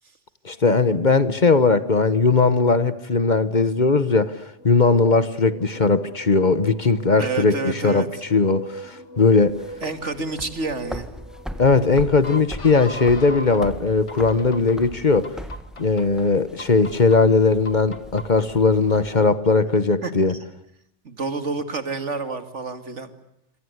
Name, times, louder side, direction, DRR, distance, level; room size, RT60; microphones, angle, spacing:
voice 1, 0.4-4.4 4.6-8.1 8.3-9.6 11.6-15.3 15.8-20.3, left 4 dB, 40° left, 14 dB, 1.4 m, -19 dB
sound 1, 4.6-13.6 14.1-14.8 15.2-16.0 16.6-17.2 17.7-18.5, equal, 80° left, 2.3 m, -40 dB
voice 2, 7.2-8.1 9.8-11.1 20.0-20.1 21.0-23.1, right 4 dB, 85° right, 9 dB, 2.7 m, -28 dB
sound 2, 9.2-19.1, equal, ahead, 1.8 m, -39 dB
27.0 x 25.5 x 8.1 m, 0.76 s
omnidirectional pair, 1.2 m